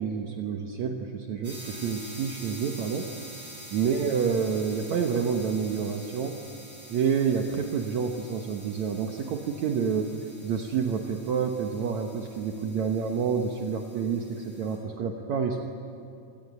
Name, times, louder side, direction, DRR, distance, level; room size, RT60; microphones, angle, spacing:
voice 1, 0.0-3.1 3.7-6.4 6.9-10.1 10.4-15.6, right 6 dB, 65° right, 3 dB, 2.5 m, -28 dB
sound 1, 1.4-14.8, right 1 dB, 45° right, 8.0 m, -47 dB
25.5 x 20.0 x 9.4 m, 2.6 s
omnidirectional pair, 3.7 m